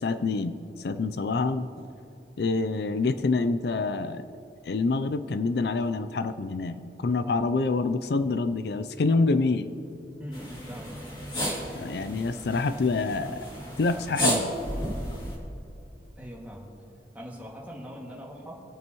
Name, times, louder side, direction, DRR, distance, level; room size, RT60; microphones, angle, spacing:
voice 1, 0.0-1.9 2.4-4.3 4.7-9.7 11.7-13.4 13.8-14.6, left 3 dB, 65° left, 11 dB, 0.4 m, -27 dB
voice 2, 10.2-11.0 16.2-16.7 17.1-18.5, equal, 10° right, -4 dB, 2.1 m, -41 dB
sound 1, 10.3-15.4, equal, 25° left, 2.4 m, -32 dB
25.0 x 8.9 x 3.0 m, 2.7 s
head